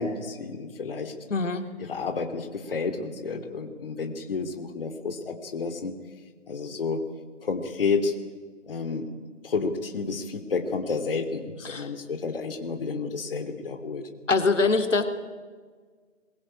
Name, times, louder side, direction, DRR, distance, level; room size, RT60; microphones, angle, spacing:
voice 1, 0.0-1.1 1.9-5.9 6.5-7.0 7.4-8.1 8.6-9.1 9.4-14.0, left 4 dB, 50° left, 6 dB, 3.1 m, -30 dB
voice 2, 1.3-1.7 11.6-11.9 14.3-15.0, left 3 dB, 80° left, 7 dB, 2.8 m, -23 dB
22.5 x 22.0 x 8.8 m, 1.5 s
figure-of-eight pair, 160°, 37 cm